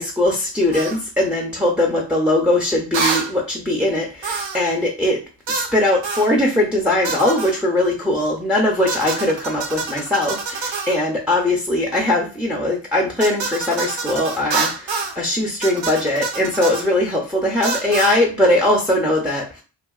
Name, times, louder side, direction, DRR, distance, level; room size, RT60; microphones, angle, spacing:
voice 1, 0.0-5.2 5.5-19.6, left 1 dB, ahead, -1 dB, 0.5 m, -20 dB
sound 1, 0.7-1.0 2.9-3.3 4.2-4.7 5.5-5.7 6.0-6.3 7.0-7.6 8.9-11.0 13.2-15.2 15.6-16.9 17.6-18.2, right 4 dB, 65° right, 0.7 m, -26 dB
2.7 x 2.4 x 2.3 m, 0.36 s
cardioid pair, 50°, 49 cm